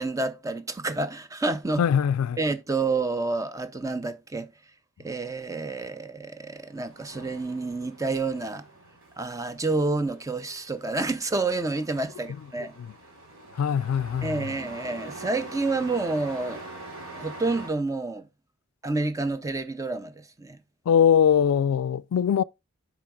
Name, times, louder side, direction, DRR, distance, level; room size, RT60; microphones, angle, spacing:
voice 1, 0.0-1.8 2.4-4.5 5.0-8.7 9.2-12.7 14.2-16.6 17.1-18.3 18.8-20.6, right 3 dB, 15° right, 0.5 m, -29 dB
voice 2, 1.8-2.4 13.6-14.5 20.9-22.4, left 8 dB, 85° left, 0.3 m, -22 dB
Truck, 6.6-17.7, right 2 dB, 80° right, 4.4 m, -44 dB
7.0 x 5.8 x 3.5 m
head